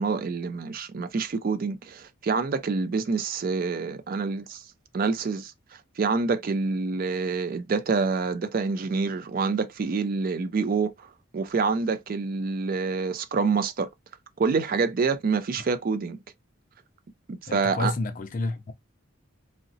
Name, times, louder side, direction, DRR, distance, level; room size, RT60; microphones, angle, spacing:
voice 1, 0.0-4.6 4.9-11.1 11.3-13.9 14.4-16.2 17.4-17.9, right 4 dB, 45° right, 0.4 m, -27 dB
voice 2, 17.5-18.7, left 2 dB, 40° left, 0.4 m, -30 dB
3.7 x 2.0 x 2.6 m
head